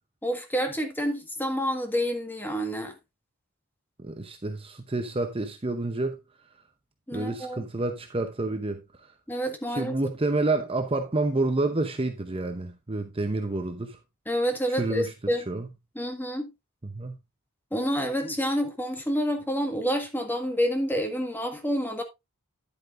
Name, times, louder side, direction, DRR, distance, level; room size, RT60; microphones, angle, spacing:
voice 1, 0.2-2.9 7.1-7.7 9.3-10.0 14.2-15.5 15.9-16.5 17.7-22.0, equal, 10° left, 1.6 m, -28 dB
voice 2, 4.0-6.2 7.1-8.8 9.7-14.0 14.7-15.1 15.5-15.7 16.9-17.2, right 2 dB, 25° right, 0.8 m, -29 dB
10.5 x 8.4 x 2.6 m
head